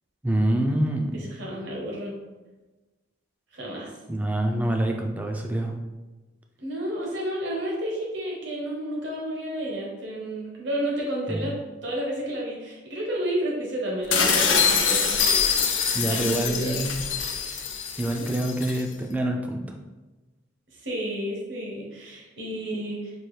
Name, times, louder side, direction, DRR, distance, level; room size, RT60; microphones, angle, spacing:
voice 1, 0.2-1.3 4.1-5.7 11.3-11.5 15.9-17.0 18.0-19.8, right 1 dB, 10° right, 2 dB, 0.3 m, -26 dB
voice 2, 1.1-2.1 3.5-3.9 6.6-15.2 16.1-16.8 18.1-18.3 20.8-23.1, right 1 dB, 70° right, -2 dB, 1.0 m, -31 dB
sound 1, 14.1-18.8, left 6 dB, 85° left, 0.5 m, -24 dB
4.5 x 2.4 x 3.2 m, 1.2 s
head